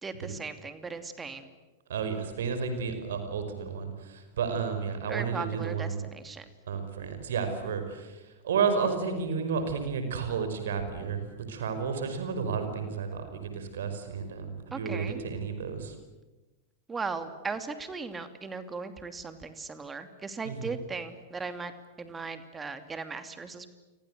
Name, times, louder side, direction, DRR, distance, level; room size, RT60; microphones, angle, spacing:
voice 1, 0.0-1.4 5.1-6.4 14.7-15.2 16.9-21.7 22.0-23.7, right 4 dB, 15° right, 9 dB, 2.7 m, -37 dB
voice 2, 1.9-6.1 6.7-15.9 20.4-20.8, right 6 dB, 60° right, 8 dB, 5.4 m, -32 dB
29.5 x 25.0 x 8.0 m, 1.1 s
figure-of-eight pair, 90°, 0 cm